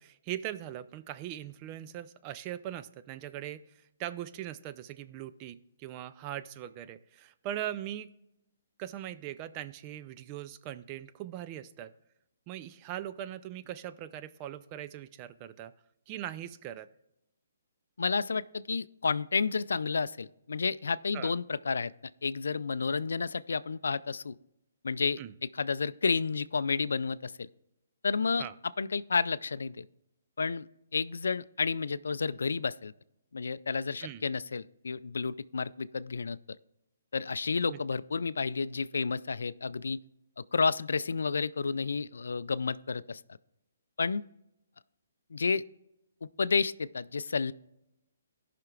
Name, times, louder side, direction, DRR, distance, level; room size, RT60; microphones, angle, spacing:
voice 1, 0.0-8.2 8.8-11.9 12.5-15.7 16.1-16.9 21.1-21.3 25.2-25.3 28.4-28.5 34.0-34.2 37.7-37.8, right 12 dB, 30° right, 13 dB, 0.4 m, -40 dB
voice 2, 18.0-21.9 22.2-24.4 24.8-27.5 28.0-28.5 28.8-29.9 30.4-30.7 30.9-32.9 33.3-36.4 37.1-40.0 40.4-43.2 44.0-44.2 45.3-45.6 46.4-47.5, left 5 dB, 80° left, 17 dB, 0.4 m, -31 dB
17.0 x 5.9 x 2.4 m, 0.85 s
hypercardioid pair, 150°, 0 cm